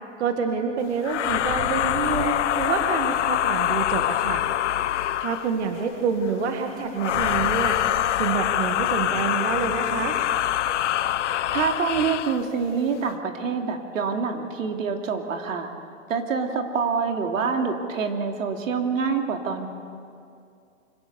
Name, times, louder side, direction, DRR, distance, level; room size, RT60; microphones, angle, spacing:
voice 1, 0.2-4.4 5.2-7.8 8.2-10.2, right 6 dB, 60° right, 4 dB, 2.0 m, -27 dB
sound 1, 1.0-5.6 7.0-12.4, left 12 dB, 65° left, 0.8 m, -25 dB
voice 2, 11.5-15.7 16.1-19.7, right 5 dB, 85° right, 3 dB, 2.8 m, -26 dB
25.5 x 17.0 x 6.9 m, 2.5 s
hypercardioid pair, 170°, 38 cm